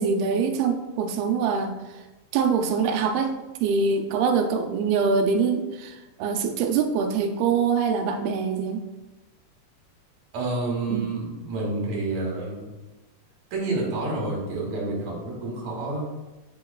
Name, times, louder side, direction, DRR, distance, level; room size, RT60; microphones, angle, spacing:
voice 1, 0.0-2.0 2.3-8.8 10.9-11.1, right 5 dB, 85° right, 6 dB, 2.5 m, -24 dB
voice 2, 10.3-12.7 13.5-16.0, right 2 dB, 55° right, -3 dB, 2.9 m, -29 dB
7.8 x 7.6 x 2.4 m, 1.1 s
omnidirectional pair, 4.2 m